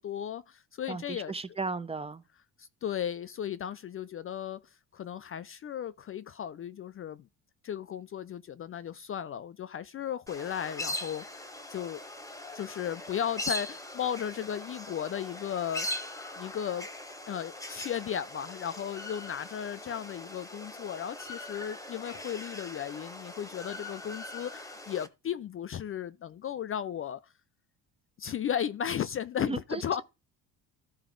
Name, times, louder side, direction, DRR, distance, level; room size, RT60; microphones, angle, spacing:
voice 1, 0.0-1.3 2.6-7.3 7.6-11.4 11.7-12.0 12.5-15.9 16.3-16.9 17.3-27.2 28.2-30.0, left 9 dB, 35° left, 0.4 m, -35 dB
voice 2, 0.9-2.2 29.4-30.0, right 3 dB, 15° right, 0.6 m, -36 dB
sound 1, 10.3-25.1, left 1 dB, 10° left, 1.1 m, -41 dB
13.5 x 4.6 x 3.8 m
cardioid pair, 105°, 38 cm